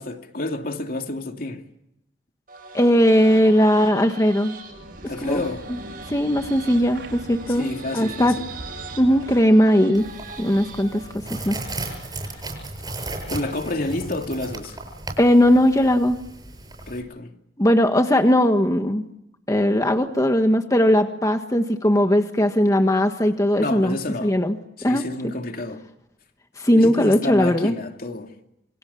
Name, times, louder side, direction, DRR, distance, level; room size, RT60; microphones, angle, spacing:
voice 1, 0.0-1.6 5.1-5.7 7.5-8.5 13.3-14.8 16.9-17.3 23.6-24.3 24.8-25.8 26.7-28.3, left 2 dB, 55° left, 2.7 m, -29 dB
sound 1, 2.5-11.2, right 4 dB, 55° right, 7.6 m, -41 dB
voice 2, 2.7-4.5 5.2-5.4 6.1-7.7 7.9-8.4 9.0-10.1 10.4-11.6 15.2-16.2 17.6-19.0 19.5-24.0 24.2-24.5 24.8-25.0 26.6-27.7, equal, 20° left, 1.5 m, -18 dB
sound 2, 4.6-9.6, right 1 dB, 80° right, 4.6 m, -41 dB
sound 3, 9.9-17.0, right 2 dB, 25° right, 7.5 m, -35 dB
27.5 x 24.5 x 7.1 m
head